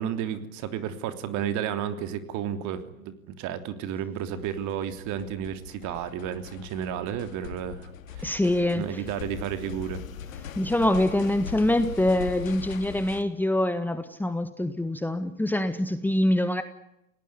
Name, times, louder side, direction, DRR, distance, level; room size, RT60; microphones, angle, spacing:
voice 1, 0.0-8.4 8.7-10.0, right 9 dB, 45° right, 9 dB, 3.3 m, -32 dB
sound 1, 4.1-13.2, left 9 dB, 75° left, 2.7 m, -41 dB
voice 2, 8.2-9.0 10.6-16.6, left 1 dB, 5° left, 10 dB, 1.6 m, -25 dB
29.5 x 19.0 x 9.8 m, 0.86 s
hypercardioid pair, 105°, 40 cm